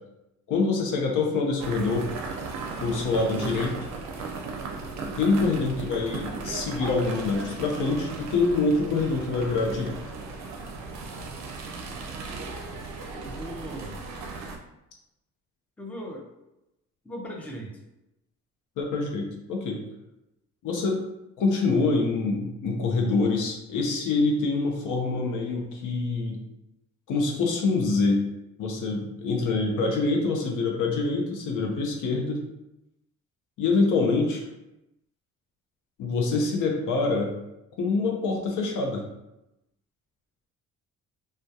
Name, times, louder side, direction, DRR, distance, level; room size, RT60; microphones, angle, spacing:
voice 1, 0.5-2.1 2.8-3.8 5.1-10.0 18.8-19.8 20.6-21.0 21.4-26.4 27.1-28.2 28.6-32.4 33.6-34.4 36.0-37.3 37.8-39.0, left 3 dB, 75° left, 0 dB, 0.6 m, -25 dB
sound 1, 1.6-14.6, right 4 dB, 60° right, 0.5 m, -36 dB
voice 2, 13.1-14.0 15.8-16.3 17.0-17.7, equal, 5° left, -1 dB, 0.5 m, -38 dB
2.2 x 2.2 x 2.7 m, 0.90 s
cardioid pair, 85°, 32 cm